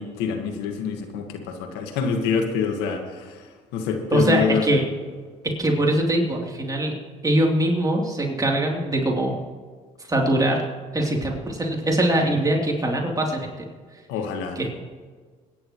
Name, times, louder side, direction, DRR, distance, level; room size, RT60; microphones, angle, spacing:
voice 1, 0.0-4.8 14.1-14.6, left 6 dB, 80° left, 4 dB, 1.7 m, -26 dB
voice 2, 4.1-4.8 5.4-6.9 7.2-9.4 10.0-10.6 10.9-13.5 13.9-14.0 14.5-14.8, right 1 dB, 20° right, -1 dB, 3.3 m, -22 dB
22.5 x 10.5 x 3.1 m, 1.5 s
hypercardioid pair, 60°, 17 cm